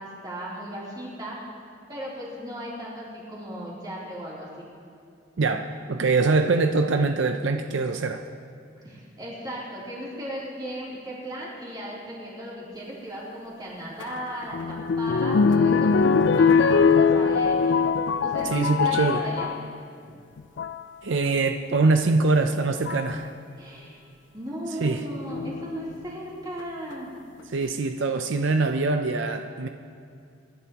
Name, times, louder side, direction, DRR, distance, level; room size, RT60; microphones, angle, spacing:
voice 1, 0.0-1.4 1.9-4.7 8.8-16.1 16.3-17.9 18.2-19.5 23.6-24.0 24.3-27.1, right 1 dB, 20° right, -6 dB, 3.2 m, -36 dB
voice 2, 5.4-8.2 18.5-19.3 21.0-23.3 24.8-25.0 27.5-29.7, right 3 dB, 75° right, 6 dB, 0.6 m, -23 dB
sound 1, 14.0-19.6 20.4-20.8 22.1-22.2 22.9-23.2 25.3-25.9 26.6-26.7 26.9-27.0, left 5 dB, 70° left, 0.4 m, -22 dB
24.5 x 11.0 x 3.0 m, 2.4 s
head